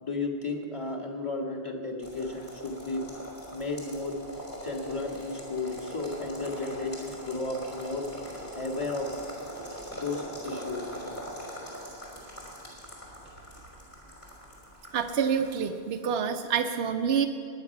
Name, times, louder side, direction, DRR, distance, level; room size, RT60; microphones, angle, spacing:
voice 1, 0.0-3.0 3.5-4.1 4.6-8.0 8.6-9.3 9.9-10.8, left 3 dB, 30° left, -2 dB, 1.9 m, -33 dB
sound 1, 2.0-15.5, equal, 50° left, 4.2 m, -42 dB
voice 2, 14.9-17.3, right 7 dB, 75° right, 5 dB, 0.9 m, -27 dB
21.0 x 9.7 x 5.9 m, 2.4 s
omnidirectional pair, 1.1 m